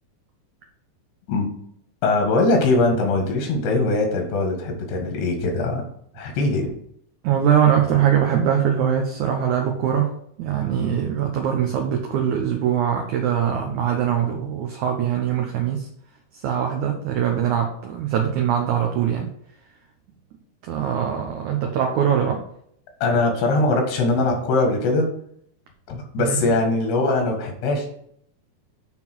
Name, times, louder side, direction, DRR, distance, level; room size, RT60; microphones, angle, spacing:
voice 1, 2.0-5.8 6.2-6.7 23.0-25.1 25.9-27.9, left 2 dB, 85° left, 2 dB, 3.9 m, -21 dB
voice 2, 7.2-15.9 16.3-19.3 20.6-22.4 26.2-26.5, right 9 dB, 75° right, 3 dB, 1.8 m, -22 dB
9.0 x 3.9 x 6.1 m, 0.68 s
omnidirectional pair, 4.6 m